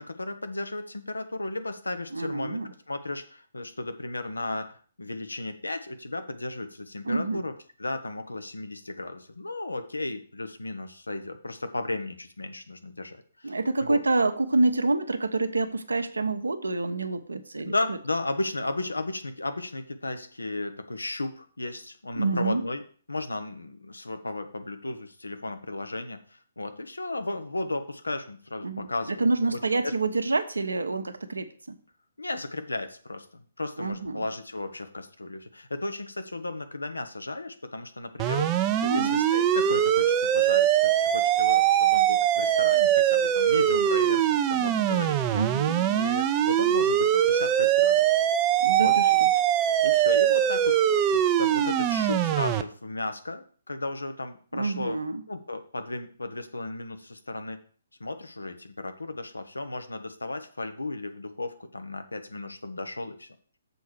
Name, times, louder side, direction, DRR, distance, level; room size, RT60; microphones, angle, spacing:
voice 1, 0.0-7.5 7.8-13.6 13.8-14.0 17.6-22.8 23.1-29.3 29.8-29.9 32.2-45.2 45.8-48.1 48.8-49.3 49.8-50.8 51.1-55.0 55.3-57.6 58.0-63.3, left 2 dB, 80° left, 8 dB, 1.1 m, -34 dB
voice 2, 2.1-2.7 7.0-7.4 13.4-18.0 22.2-22.6 28.6-31.8 33.8-34.2 38.9-39.2 45.3-45.9 48.6-49.3 54.5-55.2, right 3 dB, 75° right, 9 dB, 1.0 m, -27 dB
sound 1, 38.2-52.6, right 11 dB, 25° right, 0.6 m, -22 dB
7.0 x 4.6 x 6.5 m, 0.43 s
figure-of-eight pair, 130°, 0 cm